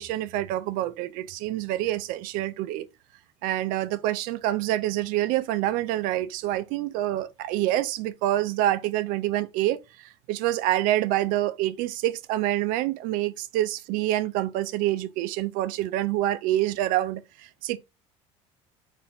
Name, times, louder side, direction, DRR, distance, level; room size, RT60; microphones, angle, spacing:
voice 1, 0.0-2.9 3.4-17.8, right 14 dB, 70° right, 0.5 m, -27 dB
4.3 x 2.6 x 3.5 m
supercardioid pair, 95°, 15 cm